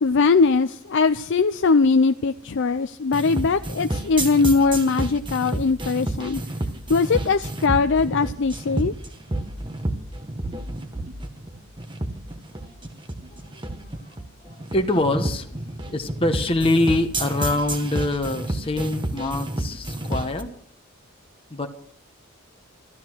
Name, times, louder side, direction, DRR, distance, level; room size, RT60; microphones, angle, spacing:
voice 1, 0.0-6.4 6.9-8.9, left 4 dB, 60° left, 9 dB, 0.5 m, -20 dB
sound 1, 3.1-20.4, right 1 dB, 20° right, 1.2 m, -29 dB
voice 2, 14.7-15.5 15.9-20.5 21.5-21.7, left 2 dB, 25° left, 4 dB, 1.1 m, -24 dB
13.5 x 13.0 x 6.1 m, 0.64 s
head